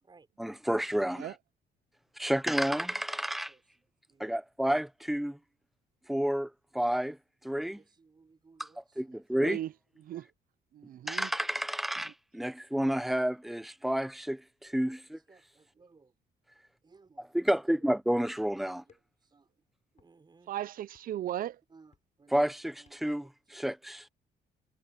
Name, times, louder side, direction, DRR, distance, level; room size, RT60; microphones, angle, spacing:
voice 1, 0.4-1.3 2.2-3.5 4.2-5.4 6.1-7.2 7.4-7.8 8.6-8.7 9.0-9.6 11.1-15.2 17.3-18.8 22.3-23.3 23.5-24.1, equal, ahead, 0.7 m, -30 dB
voice 2, 2.5-4.3 7.8-9.2 14.8-16.2 16.8-17.3 17.8-17.9 18.8-19.6 19.9-20.5 21.7-23.7, right 4 dB, 25° right, 5.1 m, -62 dB
voice 3, 9.4-9.7 10.0-10.3 10.7-11.3 20.5-21.6, right 12 dB, 60° right, 0.6 m, -36 dB
sound 1, 17.9-18.2 18.9-19.3 19.9-20.1 20.9-21.3 21.9-22.3 22.9-23.2, left 7 dB, 45° left, 7.1 m, -67 dB
cardioid pair, 110°, 17 cm